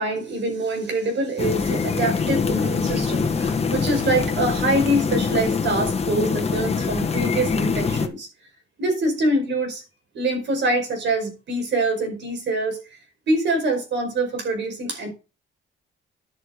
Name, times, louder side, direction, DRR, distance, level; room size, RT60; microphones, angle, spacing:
voice 1, 0.0-8.3 8.8-9.8 10.1-12.8 13.3-15.1, right 2 dB, 65° right, 5.0 m, -24 dB
sound 1, 1.4-8.1, left 5 dB, 30° left, 1.5 m, -24 dB
10.5 x 7.1 x 5.1 m
cardioid pair, 90°, 20 cm